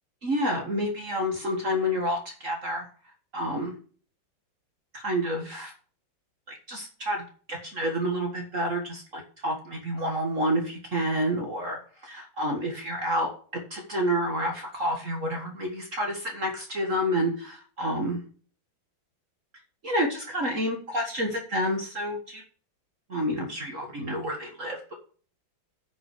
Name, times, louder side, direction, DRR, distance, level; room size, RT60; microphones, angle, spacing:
voice 1, 0.2-2.9 3.3-3.7 4.9-5.7 6.5-7.2 7.5-18.2 19.8-22.4 23.1-24.9, equal, 40° right, 2 dB, 1.9 m, -29 dB
10.0 x 6.1 x 6.6 m, 0.42 s
omnidirectional pair, 2.1 m